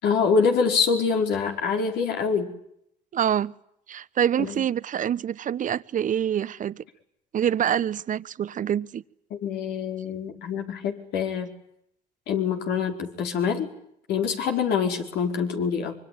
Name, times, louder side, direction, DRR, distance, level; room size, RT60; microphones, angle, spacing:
voice 1, 0.0-2.5 4.4-4.6 9.3-11.5 12.3-13.7 14.1-15.9, left 6 dB, 70° left, 5.0 m, -25 dB
voice 2, 3.1-3.5 3.9-6.8 7.3-9.0, right 9 dB, 50° right, 1.1 m, -26 dB
25.0 x 24.5 x 9.6 m
supercardioid pair, 80°, 18 cm